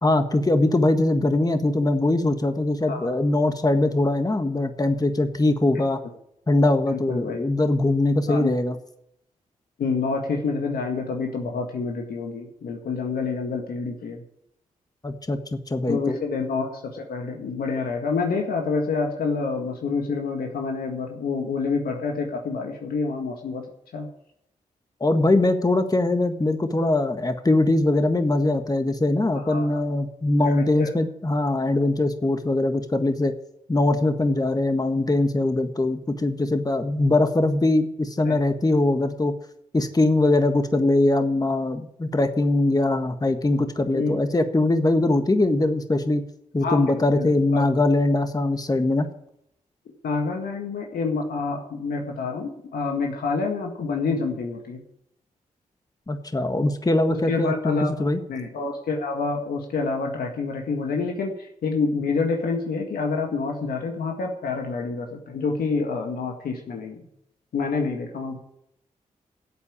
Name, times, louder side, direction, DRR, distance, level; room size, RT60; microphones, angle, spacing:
voice 1, 0.0-6.0 6.5-8.8 15.0-16.2 25.0-33.3 33.7-39.3 39.7-46.2 46.5-49.1 56.1-58.2, left 2 dB, 25° left, 7 dB, 1.6 m, -22 dB
voice 2, 6.9-7.4 8.3-8.5 9.8-14.2 15.9-23.7 23.9-24.1 29.3-29.8 30.4-31.0 38.2-38.4 43.9-44.2 46.6-47.7 50.0-54.8 57.1-67.0 67.5-68.4, left 4 dB, 80° left, 2 dB, 1.9 m, -28 dB
12.0 x 8.5 x 8.8 m, 0.75 s
supercardioid pair, 45°, 15 cm